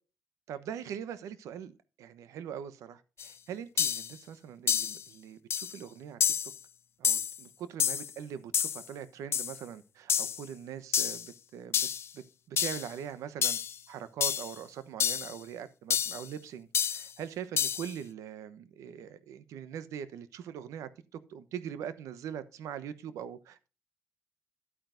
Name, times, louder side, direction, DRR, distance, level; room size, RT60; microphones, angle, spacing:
voice 1, 0.5-1.7 2.0-6.2 7.0-11.9 12.1-12.2 12.5-13.6 13.9-20.9 21.3-23.7, right 8 dB, 85° right, 1.0 m, -42 dB
sound 1, 3.2-3.3 3.8-4.1 4.7-5.0 5.5-5.8 6.2-6.6 7.0-7.4 7.8-8.1 8.5-8.8 9.3-9.6 10.1-10.4 10.9-11.3 11.7-12.1 12.6-12.9 13.4-13.7 14.2-14.5 15.0-15.3 15.9-16.2 16.7-17.1 17.6-17.9, left 8 dB, 55° left, 0.4 m, -29 dB
11.5 x 9.1 x 2.6 m
cardioid pair, 85°, 5 cm